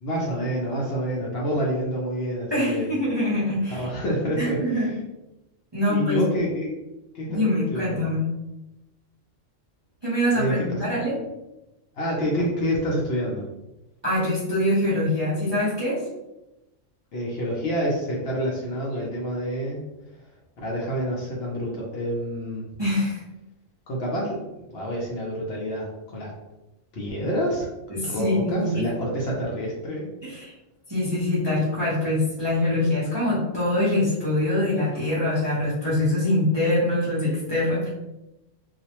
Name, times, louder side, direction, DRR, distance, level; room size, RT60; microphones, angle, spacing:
voice 1, 0.0-2.9 3.7-5.0 5.9-6.7 7.1-7.4 7.7-8.0 10.3-10.8 12.0-13.4 17.1-19.8 20.6-22.7 23.9-24.4 24.7-26.3 26.9-27.7 28.0-30.1, equal, 65° left, -3 dB, 0.7 m, -27 dB
voice 2, 2.5-3.9 4.4-4.9 5.7-6.3 7.3-8.3 10.0-11.1 14.0-16.0 22.8-23.2 27.9-28.9 30.2-30.5 30.9-37.9, left 1 dB, 30° right, -9 dB, 0.5 m, -24 dB
2.4 x 2.0 x 2.8 m, 0.97 s
omnidirectional pair, 1.3 m